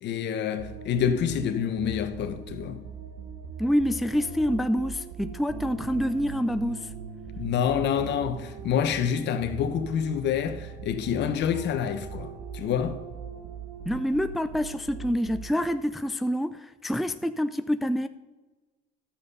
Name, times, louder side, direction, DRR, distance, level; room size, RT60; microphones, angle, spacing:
voice 1, 0.0-2.8 7.4-13.0, left 8 dB, 60° left, 0.9 m, -27 dB
sound 1, 0.6-15.7, right 6 dB, 70° right, 1.1 m, -41 dB
sound 2, 1.3-15.8, right 5 dB, 50° right, 2.0 m, -49 dB
voice 2, 3.6-6.9 13.9-18.1, equal, ahead, 0.4 m, -27 dB
12.0 x 7.0 x 5.5 m
supercardioid pair, 85°, 21 cm